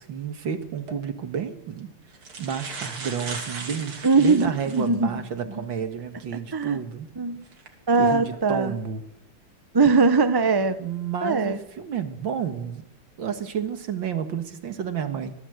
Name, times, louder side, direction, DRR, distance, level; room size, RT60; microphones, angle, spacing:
voice 1, 0.0-1.9 2.4-7.1 8.0-9.0 10.8-12.9 13.2-15.4, right 7 dB, 65° right, 8 dB, 2.3 m, -31 dB
sound 1, 0.8-1.0 1.8-1.9 2.1-4.9 5.5-5.6 7.5-7.7 8.3-8.5, right 4 dB, 80° right, 3.6 m, -37 dB
voice 2, 4.0-5.1 6.5-6.8 7.2-7.4 7.9-8.7 9.7-10.8 11.2-11.6, right 4 dB, 25° right, 11 dB, 0.4 m, -21 dB
25.0 x 17.5 x 8.1 m, 0.86 s
omnidirectional pair, 2.3 m